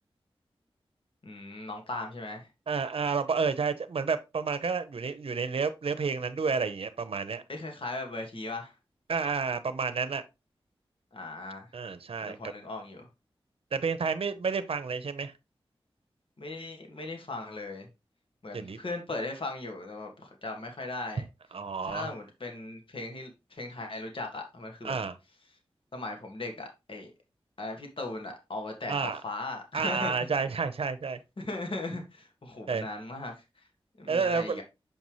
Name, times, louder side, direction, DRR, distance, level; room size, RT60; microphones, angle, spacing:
voice 1, 1.2-2.5 7.5-8.7 11.1-11.7 12.2-13.1 16.4-17.9 18.4-21.3 21.8-25.0 25.9-27.1 27.6-30.3 31.4-33.4 34.0-34.6, left 2 dB, 60° left, 1.8 m, -38 dB
voice 2, 2.7-7.4 9.1-10.2 11.7-12.4 13.7-15.3 18.5-18.8 21.5-22.1 24.8-25.1 28.9-29.2 29.7-31.2 32.7-32.9 34.1-34.6, right 5 dB, 70° right, 0.7 m, -30 dB
7.0 x 5.4 x 3.1 m
wide cardioid pair, 65°, 10 cm